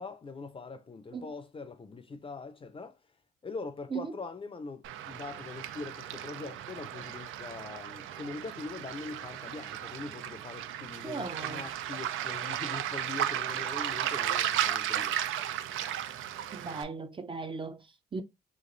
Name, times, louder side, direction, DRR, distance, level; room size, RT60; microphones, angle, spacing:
voice 1, 0.0-3.0 3.4-15.2, left 4 dB, 25° left, 0.6 m, -42 dB
Waves surf, 4.8-16.8, right 11 dB, 80° right, 0.5 m, -35 dB
voice 2, 11.0-11.7 16.5-18.2, right 4 dB, 25° right, 0.5 m, -38 dB
3.0 x 2.5 x 3.9 m
cardioid pair, 90°, 20 cm